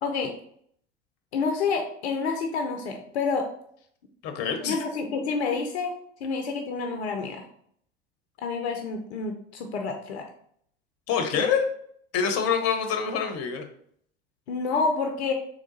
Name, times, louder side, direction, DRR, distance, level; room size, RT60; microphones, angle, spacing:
voice 1, 0.0-0.3 1.3-3.5 4.7-5.9 6.2-7.4 8.4-10.3 11.3-11.4 14.5-15.3, left 4 dB, 75° left, 4 dB, 0.7 m, -28 dB
voice 2, 4.2-4.8 11.1-11.7 12.1-13.6, left 7 dB, 45° left, 6 dB, 0.9 m, -26 dB
3.7 x 3.4 x 3.9 m, 0.65 s
hypercardioid pair, 80°, 33 cm